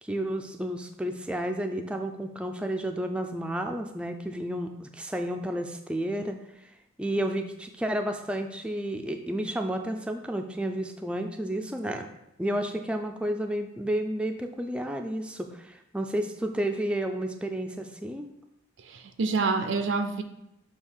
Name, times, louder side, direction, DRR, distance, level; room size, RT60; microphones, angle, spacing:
voice 1, 0.0-6.4 7.0-12.1 12.4-18.3, right 1 dB, 5° right, 5 dB, 0.3 m, -31 dB
voice 2, 18.8-20.2, right 4 dB, 80° right, 7 dB, 0.5 m, -27 dB
6.4 x 2.9 x 5.4 m, 0.84 s
head